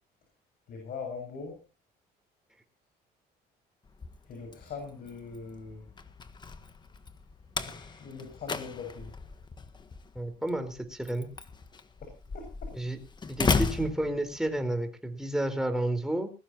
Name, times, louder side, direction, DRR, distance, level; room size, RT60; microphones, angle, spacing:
voice 1, 0.7-1.6 4.2-5.9 7.6-9.1 12.3-12.7, left 5 dB, 60° left, 3 dB, 7.3 m, -41 dB
Slam, 3.9-14.8, left 4 dB, 25° left, 1.5 m, -36 dB
voice 2, 10.1-11.3 12.7-13.0 13.3-16.3, right 1 dB, 5° right, 6 dB, 4.4 m, -31 dB
21.0 x 17.5 x 3.0 m, 0.34 s
cardioid pair, 110°, 17 cm